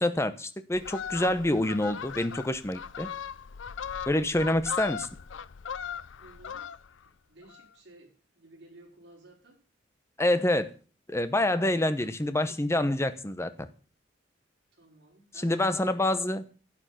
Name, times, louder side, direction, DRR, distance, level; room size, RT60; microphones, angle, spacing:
voice 1, 0.0-3.1 4.1-5.1 10.2-10.7 11.1-13.7 15.4-16.4, left 1 dB, 15° left, 0.9 m, -27 dB
Fowl, 0.7-7.1 7.4-7.7, left 7 dB, 80° left, 0.5 m, -38 dB
voice 2, 6.2-6.7 7.0-8.1 8.4-9.6 12.0-12.6 14.8-16.4, right 1 dB, 60° right, 5.0 m, -55 dB
11.5 x 8.9 x 5.8 m
head